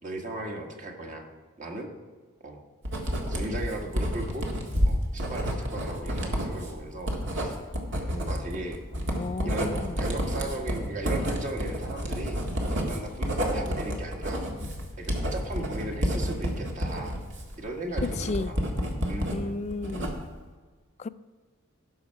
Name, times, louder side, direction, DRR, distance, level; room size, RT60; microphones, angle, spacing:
voice 1, 0.0-1.3 1.6-1.9 2.4-2.6 3.3-4.5 4.8-7.5 8.1-8.8 9.4-14.4 15.0-17.2 17.6-18.6 19.1-19.6, right 2 dB, 35° right, 1 dB, 1.6 m, -37 dB
Writing, 2.8-19.4 19.7-20.4, equal, 60° right, 1.8 m, -29 dB
voice 2, 9.1-10.0 18.2-18.5 19.3-20.1 21.0-21.1, left 3 dB, 30° left, 15 dB, 0.3 m, -33 dB
16.5 x 6.5 x 4.7 m, 1.5 s
head